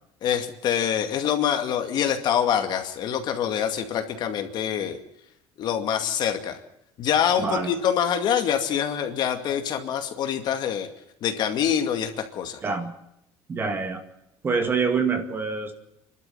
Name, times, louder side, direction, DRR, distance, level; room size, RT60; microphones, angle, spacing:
voice 1, 0.2-5.0 5.6-6.6 7.0-10.9 11.2-12.6, left 9 dB, 40° left, 6 dB, 2.3 m, -25 dB
voice 2, 7.4-7.8 12.6-12.9 13.5-14.0 14.4-15.7, right 5 dB, 20° right, 7 dB, 2.2 m, -26 dB
28.5 x 12.5 x 9.3 m, 0.83 s
cardioid pair, 175°, 11 cm